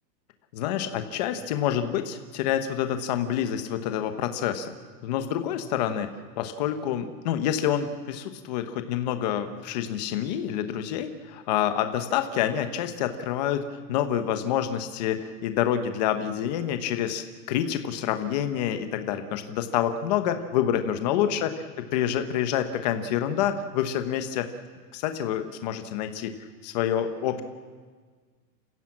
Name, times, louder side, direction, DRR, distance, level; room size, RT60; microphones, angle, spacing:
voice 1, 0.5-4.7 5.0-6.1 6.4-21.5 21.9-24.5 24.9-26.3 26.6-27.4, left 10 dB, 25° left, 8 dB, 1.1 m, -27 dB
28.5 x 15.5 x 7.4 m, 1.5 s
supercardioid pair, 175°, 50 cm